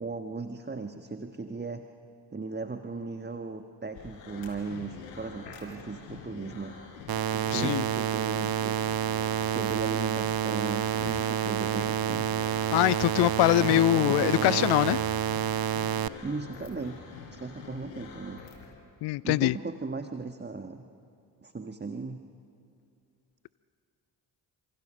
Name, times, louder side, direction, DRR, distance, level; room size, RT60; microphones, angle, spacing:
voice 1, 0.0-1.8 2.3-6.8 7.3-8.9 9.4-12.3 13.6-14.7 16.2-17.0 17.3-18.4 19.2-20.8 21.4-22.2, right 3 dB, 20° right, 6 dB, 1.4 m, -37 dB
sound 1, 3.9-18.7, left 5 dB, 80° left, 4.2 m, -46 dB
sound 2, 7.1-16.1, right 10 dB, 50° right, 0.9 m, -29 dB
voice 2, 7.5-7.8 12.7-15.0 19.0-19.5, left 18 dB, 55° left, 20 dB, 0.5 m, -23 dB
28.0 x 26.5 x 6.4 m, 2.5 s
hypercardioid pair, 40°, 49 cm